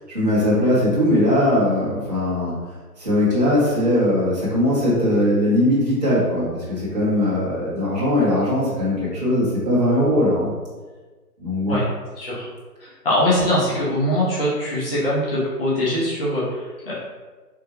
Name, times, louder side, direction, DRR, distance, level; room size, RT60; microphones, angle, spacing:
voice 1, 0.1-2.5 3.0-10.5 11.4-11.8, left 1 dB, 30° right, -11 dB, 0.7 m, -20 dB
voice 2, 12.1-12.5 12.8-16.9, left 1 dB, 35° left, -9 dB, 0.8 m, -22 dB
3.6 x 2.1 x 2.9 m, 1.3 s
figure-of-eight pair, 160°, 47 cm